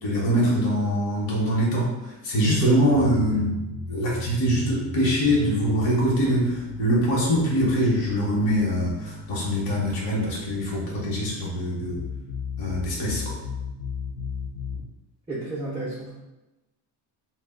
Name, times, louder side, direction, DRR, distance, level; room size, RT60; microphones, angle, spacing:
voice 1, 0.0-3.5 3.9-12.0 12.6-13.3, equal, 55° left, -4 dB, 0.9 m, -23 dB
sound 1, 2.9-14.9, left 4 dB, 70° left, 0.5 m, -36 dB
voice 2, 15.3-16.1, right 2 dB, 15° right, -10 dB, 0.3 m, -32 dB
2.3 x 2.0 x 3.5 m, 1.0 s
cardioid pair, 165°, 44 cm